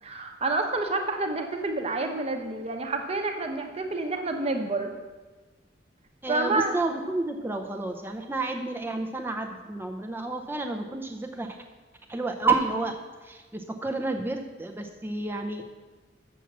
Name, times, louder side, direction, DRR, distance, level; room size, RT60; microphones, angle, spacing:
voice 1, 0.0-4.9 6.3-6.7, right 2 dB, 35° right, 5 dB, 0.9 m, -28 dB
voice 2, 6.2-11.6 12.1-13.0 13.2-15.6, right 3 dB, 10° right, 3 dB, 0.5 m, -30 dB
7.1 x 6.0 x 7.3 m, 1.3 s
head